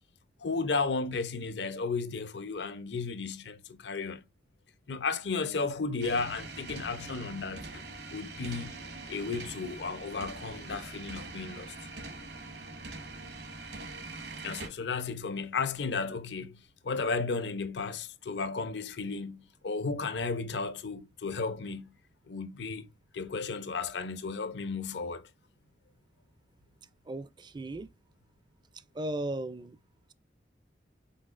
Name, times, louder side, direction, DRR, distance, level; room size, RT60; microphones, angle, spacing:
voice 1, 0.4-4.2 4.9-7.8 8.1-8.8 9.1-11.7 14.4-16.6 16.8-21.9 22.3-22.8 23.1-25.3, left 4 dB, 75° left, 0.7 m, -34 dB
sound 1, 6.0-14.7, right 3 dB, 65° right, 1.2 m, -43 dB
voice 2, 27.1-27.9 29.0-29.8, right 1 dB, 25° right, 0.4 m, -36 dB
5.5 x 3.8 x 2.4 m
head